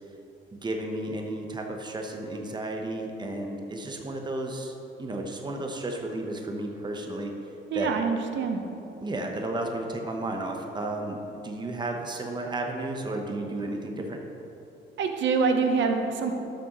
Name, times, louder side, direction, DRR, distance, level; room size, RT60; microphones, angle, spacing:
voice 1, 0.6-4.7 5.0-7.3 7.7-7.9 9.0-14.2, right 2 dB, 20° right, 2 dB, 0.9 m, -33 dB
voice 2, 7.7-8.6 15.0-16.3, right 5 dB, 70° right, 5 dB, 0.9 m, -25 dB
11.0 x 6.2 x 3.0 m, 3.0 s
cardioid pair, 90°, 20 cm